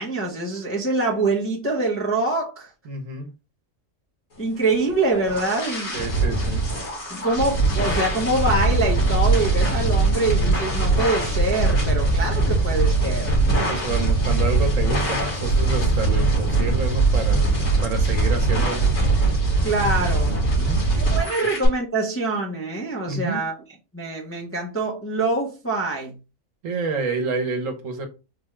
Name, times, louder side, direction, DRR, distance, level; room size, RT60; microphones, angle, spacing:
voice 1, 0.0-2.7 4.4-6.0 7.1-13.4 19.6-20.3 21.0-23.5 23.9-26.1, right 2 dB, 15° left, 0.5 m, -25 dB
voice 2, 2.8-3.3 5.9-6.7 12.5-12.6 13.5-17.6 17.8-19.0 20.5-20.8 23.1-23.4 26.6-28.1, right 3 dB, 75° right, 1.3 m, -29 dB
sound 1, 4.7-21.7, right 3 dB, 80° left, 2.2 m, -21 dB
4.3 x 2.3 x 3.0 m
omnidirectional pair, 1.4 m